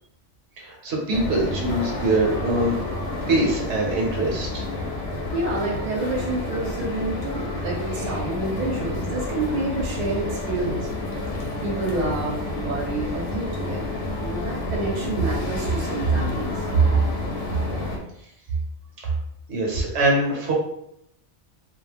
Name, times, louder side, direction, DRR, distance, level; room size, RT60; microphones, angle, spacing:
voice 1, 0.6-2.7 3.3-4.7 19.0-19.1 19.5-20.5, right 1 dB, 75° right, -2 dB, 1.0 m, -23 dB
sound 1, 1.1-18.0, left 2 dB, 85° left, 0.9 m, -30 dB
voice 2, 5.3-10.8 11.6-16.5, right 2 dB, 45° right, -2 dB, 0.7 m, -28 dB
2.3 x 2.1 x 3.2 m, 0.75 s
omnidirectional pair, 1.2 m